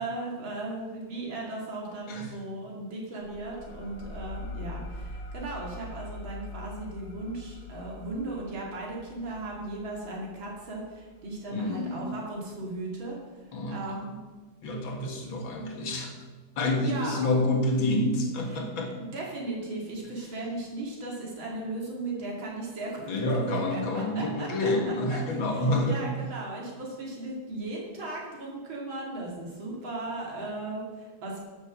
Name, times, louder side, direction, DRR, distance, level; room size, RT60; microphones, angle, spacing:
voice 1, 0.0-14.2 16.8-17.3 18.5-18.6 19.0-23.1 23.5-25.2 25.5-31.4, right 2 dB, 85° right, -3 dB, 3.3 m, -37 dB
sound 1, 3.2-12.4, left 2 dB, 45° left, 2.5 m, -43 dB
voice 2, 11.5-12.1 13.5-14.0 14.6-16.1 16.6-18.9 23.1-26.0, left 1 dB, 85° left, 3 dB, 2.5 m, -28 dB
12.5 x 7.2 x 6.3 m, 1.3 s
omnidirectional pair, 2.1 m